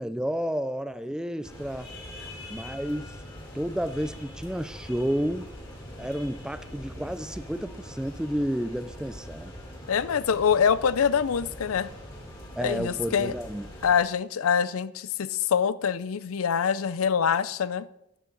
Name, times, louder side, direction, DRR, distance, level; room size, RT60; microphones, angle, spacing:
voice 1, 0.0-1.9 2.5-3.2 3.5-5.5 6.0-9.5 12.6-13.7, equal, 5° right, 0.3 m, -31 dB
sound 1, 1.4-14.0, equal, 20° left, 2.7 m, -43 dB
voice 2, 9.9-11.9 12.6-13.3 13.8-17.9, left 7 dB, 85° left, 0.5 m, -25 dB
12.5 x 11.0 x 3.9 m
head